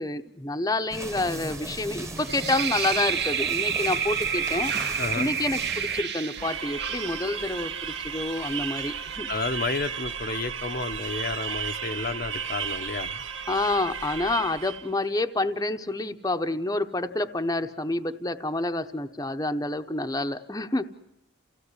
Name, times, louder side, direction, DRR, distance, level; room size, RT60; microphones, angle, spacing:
voice 1, 0.0-4.7 5.2-9.3 13.5-20.8, left 2 dB, 20° left, 0.9 m, -28 dB
sound 1, 0.9-6.0, right 1 dB, 15° right, 1.4 m, -38 dB
sound 2, 2.2-9.2, right 7 dB, 55° right, 1.6 m, -30 dB
voice 2, 5.0-5.3 9.3-13.2, left 3 dB, 50° left, 0.9 m, -31 dB
sound 3, 6.4-14.9, right 7 dB, 75° right, 1.5 m, -34 dB
29.0 x 17.0 x 9.8 m
head